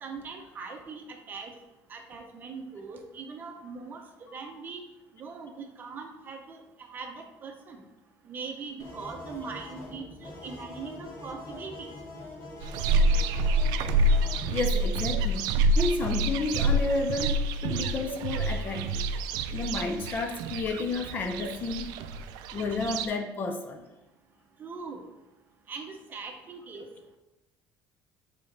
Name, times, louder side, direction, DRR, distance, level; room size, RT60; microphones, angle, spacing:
voice 1, 0.0-1.5 1.9-4.0 4.3-4.8 5.1-6.6 6.9-7.8 8.2-11.9 24.6-25.0 25.7-26.9, right 5 dB, 30° right, 4 dB, 0.7 m, -41 dB
sound 1, 8.8-14.4, left 2 dB, 55° left, 2.2 m, -43 dB
sound 2, 12.6-23.1, right 1 dB, 75° right, 0.4 m, -27 dB
voice 2, 13.3-13.7 14.5-19.1 19.5-22.0 22.5-23.8, left 3 dB, 30° left, 5 dB, 0.4 m, -32 dB
6.9 x 4.1 x 3.3 m, 1.0 s
cardioid pair, 165°, 7 cm